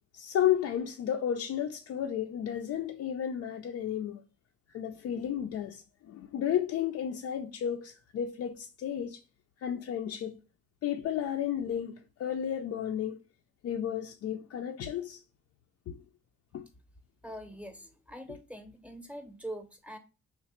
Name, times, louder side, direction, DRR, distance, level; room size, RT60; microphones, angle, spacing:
voice 1, 0.1-4.2 4.7-9.2 9.6-10.4 10.8-13.2 13.6-15.2 15.9-16.0 16.5-16.6, left 9 dB, 55° left, 0.4 m, -32 dB
voice 2, 17.2-20.0, right 1 dB, 5° right, 0.7 m, -43 dB
3.2 x 2.1 x 4.2 m
cardioid pair, 90°, 30 cm